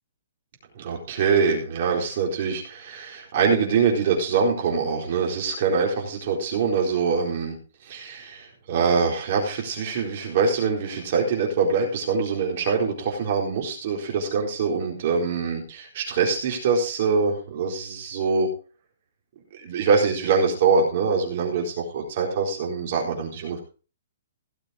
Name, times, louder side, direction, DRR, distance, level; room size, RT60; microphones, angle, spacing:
voice 1, 0.8-7.6 7.8-18.5 19.6-23.6, right 5 dB, 40° right, 0 dB, 4.1 m, -24 dB
17.0 x 6.7 x 5.1 m, 0.35 s
hypercardioid pair, 170°, 0 cm